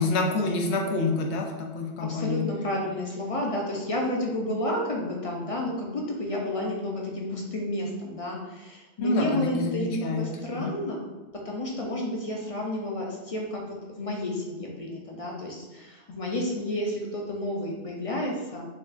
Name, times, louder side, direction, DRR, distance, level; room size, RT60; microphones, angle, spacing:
voice 1, 0.0-2.5 9.0-10.3 10.5-10.7, left 3 dB, 75° left, 3 dB, 0.9 m, -27 dB
voice 2, 2.0-8.4 8.6-11.0 11.5-13.6 14.0-15.6 16.1-18.7, left 1 dB, 45° left, -1 dB, 0.5 m, -31 dB
6.0 x 2.3 x 2.4 m, 1.1 s
omnidirectional pair, 1.2 m